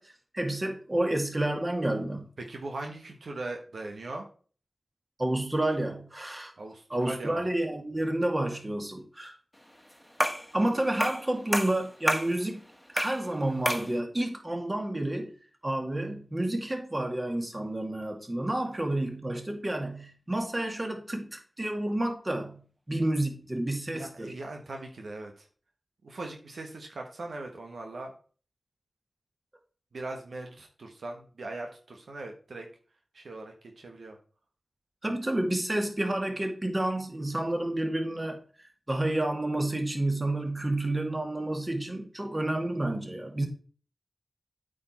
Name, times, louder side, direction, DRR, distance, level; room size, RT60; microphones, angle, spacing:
voice 1, 0.0-2.3 5.2-6.5 6.9-9.3 10.5-12.7 12.9-15.3 15.6-24.3 35.0-43.5, right 1 dB, 30° right, 2.3 m, -30 dB
voice 2, 2.5-4.2 6.6-7.4 23.9-25.5 26.0-28.1 29.9-32.7 33.1-34.2, right 2 dB, 85° right, 1.3 m, -40 dB
sound 1, 10.2-10.5 11.0-11.3 11.5-12.3 13.0-13.2 13.7-13.9, equal, ahead, 1.5 m, -28 dB
8.6 x 5.2 x 4.3 m
cardioid pair, 45°, 0 cm